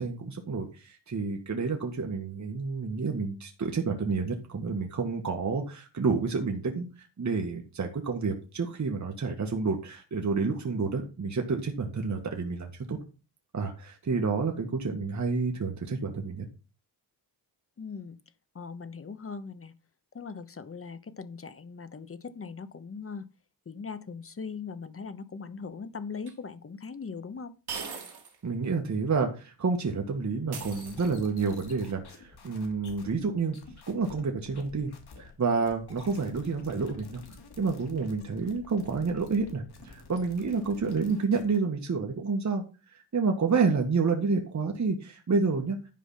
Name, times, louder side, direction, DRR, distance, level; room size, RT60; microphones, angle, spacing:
voice 1, 0.0-13.0 13.5-16.5 28.4-33.6 33.9-34.9 35.2-37.2 37.6-45.8, right 4 dB, 40° right, 1.8 m, -29 dB
voice 2, 17.8-18.2 18.5-19.7 20.1-23.3 23.7-27.5, left 5 dB, 30° left, 1.0 m, -40 dB
sound 1, 26.3-26.4 27.7-28.4 28.7-28.8 30.5-31.4, right 6 dB, 60° right, 2.7 m, -40 dB
sound 2, 30.6-35.4 35.7-41.6, left 3 dB, 60° left, 3.0 m, -50 dB
11.5 x 5.0 x 5.7 m
cardioid pair, 105°, 43 cm